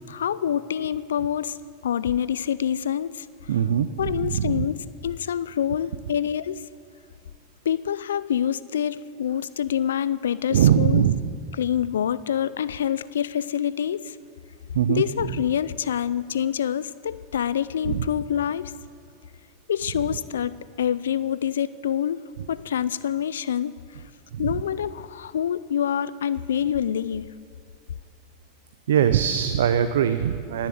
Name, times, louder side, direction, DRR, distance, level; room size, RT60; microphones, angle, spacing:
voice 1, 0.0-1.6 1.8-3.5 4.0-6.7 7.6-11.0 11.6-14.2 14.9-18.7 19.7-23.8 24.4-27.3, left 9 dB, 80° left, 17 dB, 0.4 m, -26 dB
voice 2, 3.5-4.7 10.5-11.2 14.7-15.0 17.8-18.1 28.9-30.7, right 9 dB, 75° right, 10 dB, 0.6 m, -21 dB
18.5 x 7.3 x 9.4 m, 2.2 s
hypercardioid pair, 90°, 0 cm